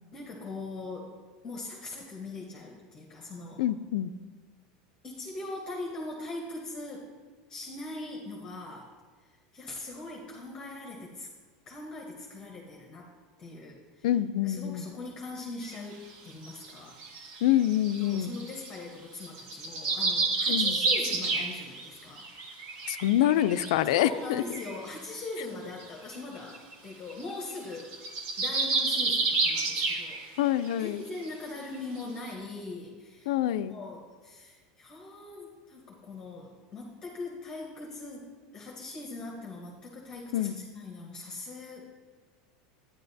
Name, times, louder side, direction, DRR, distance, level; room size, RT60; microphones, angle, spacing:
voice 1, 0.1-1.2 1.4-3.6 5.0-7.1 7.5-8.9 9.5-11.3 11.7-13.1 13.4-14.1 14.4-17.0 18.0-22.8 23.9-27.9 28.4-30.4 30.8-41.9, left 2 dB, 20° left, -1 dB, 0.9 m, -41 dB
voice 2, 3.6-4.1 14.0-14.8 17.4-18.3 20.5-20.8 22.9-24.4 30.4-31.0 33.3-33.7 40.3-40.6, left 12 dB, 75° left, 13 dB, 0.4 m, -26 dB
sound 1, 15.6-15.7 16.4-18.8 19.2-21.9 22.2-23.8 24.2-24.3 24.5-24.8 25.8-25.9 26.1-26.2 26.5-26.7 27.1-27.2 27.5-30.4 30.7-30.9 31.3-31.4 32.0-32.1, right 3 dB, 45° right, 1.0 m, -29 dB
11.5 x 9.5 x 2.7 m, 1.5 s
supercardioid pair, 165°, 3 cm